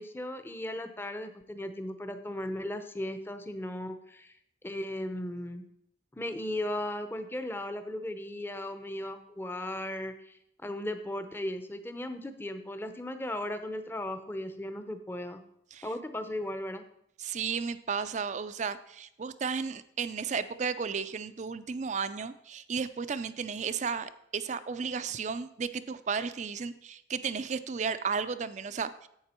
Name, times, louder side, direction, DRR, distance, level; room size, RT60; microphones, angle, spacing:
voice 1, 0.0-4.3 4.6-5.6 6.1-15.4 15.8-16.8, left 1 dB, 10° left, 9 dB, 0.7 m, -36 dB
voice 2, 17.2-29.1, right 5 dB, 40° right, 13 dB, 0.4 m, -34 dB
11.0 x 8.3 x 4.4 m, 0.74 s
head